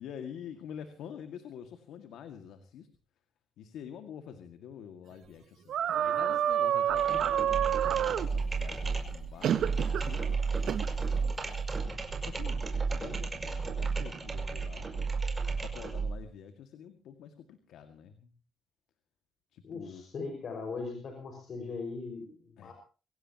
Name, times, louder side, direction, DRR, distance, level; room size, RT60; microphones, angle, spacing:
voice 1, 0.0-2.9 3.6-9.6 9.9-11.6 12.2-15.0 15.6-18.3 19.5-20.0 22.6-22.7, left 8 dB, 80° left, 7 dB, 2.0 m, -47 dB
sound 1, 5.7-8.3 9.4-10.1 10.7-10.9, right 10 dB, 70° right, 0.9 m, -28 dB
sound 2, 6.9-16.2, right 4 dB, 25° right, 5.4 m, -33 dB
voice 2, 19.6-22.7, left 4 dB, 55° left, 3 dB, 5.4 m, -39 dB
24.5 x 16.5 x 3.0 m, 0.36 s
cardioid pair, 90°, 0 cm